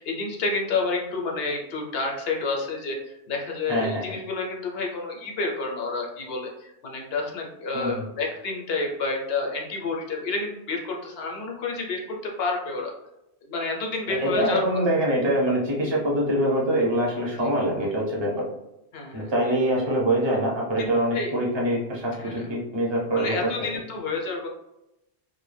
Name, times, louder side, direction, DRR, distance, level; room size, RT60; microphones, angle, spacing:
voice 1, 0.0-3.0 3.3-12.9 13.4-14.6 18.9-19.3 20.8-21.3 22.1-22.4 23.1-24.5, left 3 dB, 65° left, 0 dB, 0.8 m, -29 dB
voice 2, 3.7-4.0 7.7-8.0 14.2-18.4 19.1-23.5, right 1 dB, 30° right, -3 dB, 0.7 m, -24 dB
2.2 x 2.1 x 3.1 m, 0.87 s
omnidirectional pair, 1.1 m